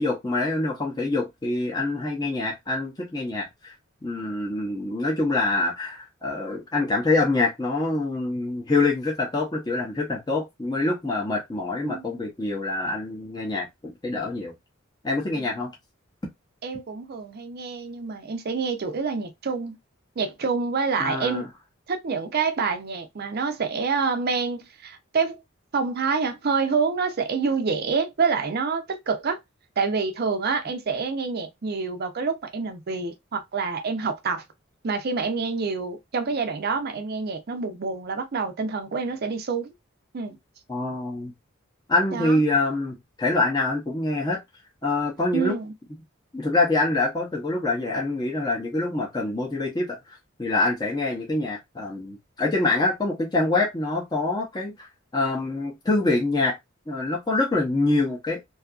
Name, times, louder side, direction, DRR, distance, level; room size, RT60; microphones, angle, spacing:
voice 1, 0.0-3.7 4.0-14.5 15.0-15.7 21.0-21.5 40.7-41.3 41.9-44.4 44.8-45.5 46.3-56.5 56.9-58.4, left 2 dB, 20° left, 0.6 m, -25 dB
voice 2, 11.8-12.2 16.6-19.8 20.2-21.5 21.9-25.4 25.7-29.4 29.8-34.4 34.8-39.7 40.1-40.4 42.1-42.4 45.3-45.7, right 5 dB, 50° right, 0.5 m, -27 dB
2.7 x 2.4 x 2.3 m
head